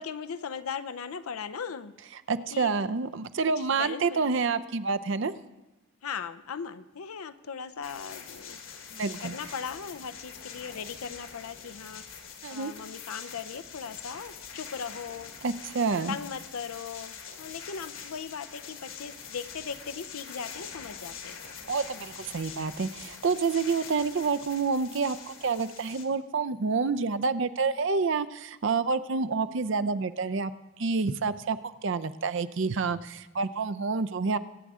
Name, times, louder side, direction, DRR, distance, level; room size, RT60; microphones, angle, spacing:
voice 1, 0.0-1.9 2.5-2.9 3.6-4.6 6.0-8.6 9.2-12.0 12.5-15.3 16.1-21.4, left 6 dB, 85° left, 12 dB, 0.6 m, -38 dB
voice 2, 2.3-5.3 8.9-9.4 12.4-12.7 15.4-16.2 21.7-30.5 30.8-34.4, right 4 dB, 55° right, 13 dB, 0.5 m, -28 dB
sound 1, 7.8-26.0, left 6 dB, 65° left, 1.5 m, -44 dB
22.0 x 9.3 x 3.7 m, 1.0 s
head